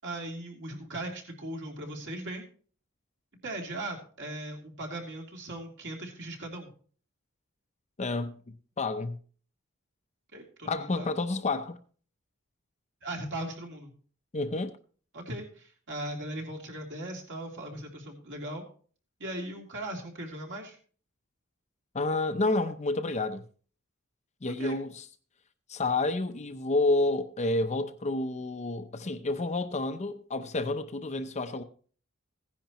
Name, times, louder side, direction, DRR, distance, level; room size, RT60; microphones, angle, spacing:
voice 1, 0.0-2.5 3.4-6.7 10.3-11.1 13.0-13.9 15.1-18.6 19.2-20.8 24.6-24.8, right 1 dB, 60° right, 3.0 m, -38 dB
voice 2, 8.0-9.2 10.7-11.8 14.3-14.8 21.9-23.4 24.4-25.0 25.7-31.6, left 2 dB, 35° left, 0.7 m, -29 dB
15.5 x 10.5 x 3.0 m
head